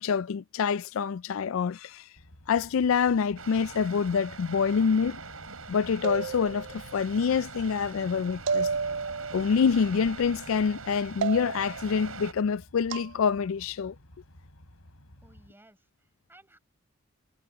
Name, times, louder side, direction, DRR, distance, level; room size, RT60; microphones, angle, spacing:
voice 1, 0.0-2.0 2.5-5.2 5.7-8.7 9.3-13.9, left 6 dB, 70° left, 0.4 m, -26 dB
Truck, 2.2-15.5, left 1 dB, 85° left, 4.8 m, -54 dB
sound 1, 3.4-12.3, right 4 dB, 75° right, 7.3 m, -43 dB
sound 2, 6.0-6.9 8.5-9.4 11.2-11.8 12.9-13.1, right 5 dB, 55° right, 0.4 m, -31 dB
voice 2, 15.2-16.6, right 1 dB, 10° right, 7.1 m, -58 dB
head